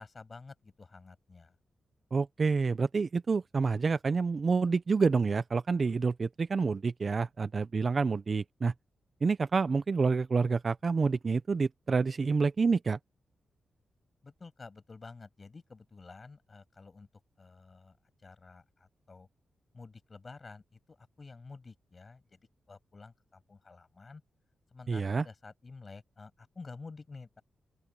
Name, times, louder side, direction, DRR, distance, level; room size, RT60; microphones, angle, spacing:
voice 1, 0.0-1.5 14.2-17.1 17.4-18.0 18.2-19.3 19.7-22.4 22.7-24.2 24.7-27.4, left 4 dB, 30° left, 7.3 m, -50 dB
voice 2, 2.1-8.7 9.2-13.0 24.9-25.2, right 4 dB, 35° right, 0.4 m, -28 dB
open air
wide cardioid pair, 145°, 0 cm